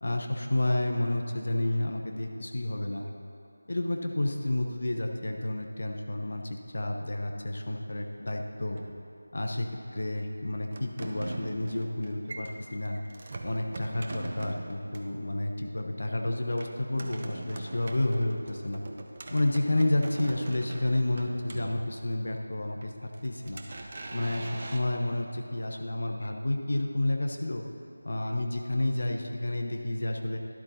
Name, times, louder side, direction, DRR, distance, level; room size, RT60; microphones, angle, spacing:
voice 1, 0.0-3.1 3.7-8.8 9.3-13.0 13.4-18.8 19.3-27.6 28.0-30.4, left 1 dB, 50° left, 2 dB, 0.9 m, -30 dB
sound 1, 8.7-9.6 10.7-15.2 16.6-22.3 22.8-24.8, right 2 dB, 30° right, 0.6 m, -42 dB
12.0 x 11.5 x 2.8 m, 2.8 s
figure-of-eight pair, 165°, 0 cm